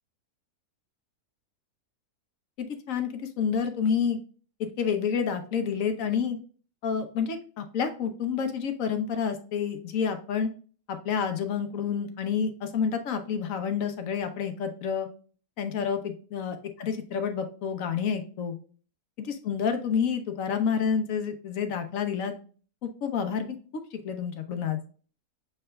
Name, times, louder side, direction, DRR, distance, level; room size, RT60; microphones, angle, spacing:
voice 1, 2.9-4.2 4.8-6.4 6.8-10.5 10.9-15.1 15.6-18.5 19.2-22.4 22.8-23.6 23.9-24.8, left 7 dB, 65° left, 7 dB, 1.1 m, -29 dB
6.7 x 3.3 x 2.3 m, 0.40 s
omnidirectional pair, 1.6 m